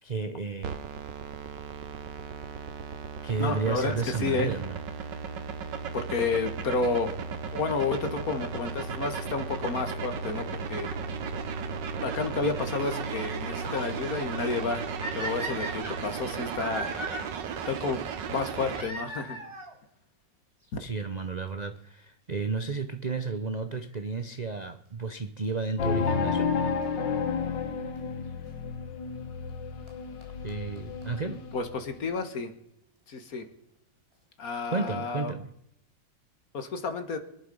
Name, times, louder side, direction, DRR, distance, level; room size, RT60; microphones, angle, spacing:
voice 1, 0.0-0.8 3.2-4.8 20.8-26.5 30.4-31.4 34.7-35.5, right 4 dB, 55° right, 9 dB, 0.4 m, -32 dB
sound 1, 0.6-18.8, right 5 dB, 75° right, 1.7 m, -35 dB
voice 2, 3.4-4.5 5.9-7.2 7.5-10.9 12.0-14.9 15.1-17.0 17.7-19.4 31.3-32.5 33.1-33.5 34.4-35.3 36.5-37.2, left 4 dB, 55° left, 8 dB, 1.9 m, -31 dB
sound 2, 15.0-17.2 18.7-19.7 20.7-20.8 21.5-21.6 21.8-21.9 23.7-24.0 26.8-26.9 28.0-28.1 29.5-29.6 29.9-30.0 30.2-30.3 30.5-30.6 30.8-30.9 31.0-31.1 31.3-31.4, right 1 dB, 15° right, 3.0 m, -37 dB
sound 3, 25.8-32.1, left 5 dB, 80° left, 1.8 m, -31 dB
22.5 x 11.0 x 5.4 m, 0.80 s
omnidirectional pair, 1.9 m